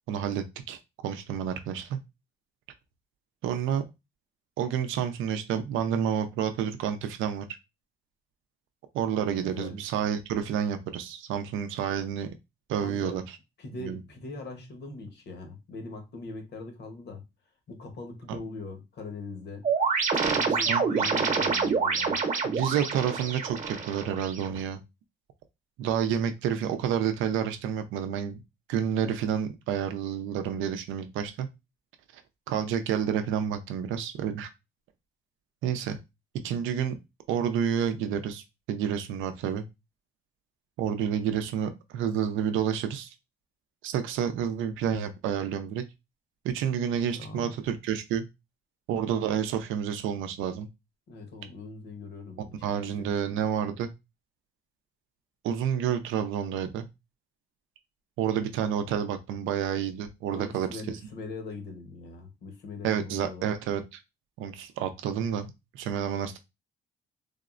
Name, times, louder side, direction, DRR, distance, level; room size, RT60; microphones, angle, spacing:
voice 1, 0.1-2.0 3.4-3.8 4.6-7.5 8.9-12.3 12.7-13.4 13.7-14.0 18.3-18.4 20.7-21.1 22.4-24.8 25.8-28.4 28.7-31.5 32.1-32.2 32.5-34.5 35.6-36.0 36.4-37.0 37.3-39.6 40.8-43.1 43.8-45.8 46.4-48.2 48.9-50.7 52.6-53.9 55.4-56.9 58.2-60.8 62.8-64.0 64.4-66.4, right 8 dB, 90° right, 0.5 m, -29 dB
voice 2, 9.4-9.8 12.8-13.2 13.6-17.2 17.7-19.7 20.2-22.2 47.2-47.5 51.1-53.3 60.3-63.5, left 3 dB, 60° left, 1.0 m, -41 dB
sound 1, 19.6-24.6, right 5 dB, 40° right, 0.8 m, -27 dB
3.5 x 2.0 x 2.4 m
cardioid pair, 90°, 20 cm